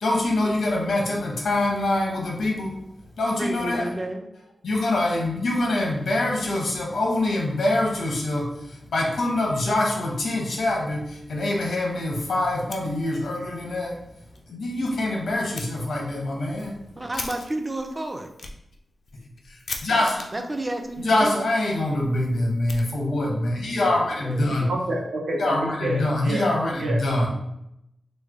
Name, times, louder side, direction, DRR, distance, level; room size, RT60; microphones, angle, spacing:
voice 1, 0.0-2.8 3.2-3.9 4.6-14.0 14.5-16.8 19.5-19.6 19.8-20.3 21.0-24.7 25.4-27.3, left 1 dB, 75° left, -1 dB, 0.8 m, -24 dB
voice 2, 3.4-4.3 17.0-18.3 20.3-21.4 23.8-24.5, right 1 dB, 20° right, 5 dB, 0.3 m, -31 dB
Fire, 12.7-13.5 13.8-13.9 14.3-14.4 15.5-15.7 16.3-23.4, left 3 dB, 60° left, 0.3 m, -41 dB
voice 3, 24.7-26.5 26.7-27.0, right 1 dB, 85° right, -2 dB, 0.8 m, -28 dB
3.1 x 2.1 x 3.4 m, 0.80 s
wide cardioid pair, 150°, 0 cm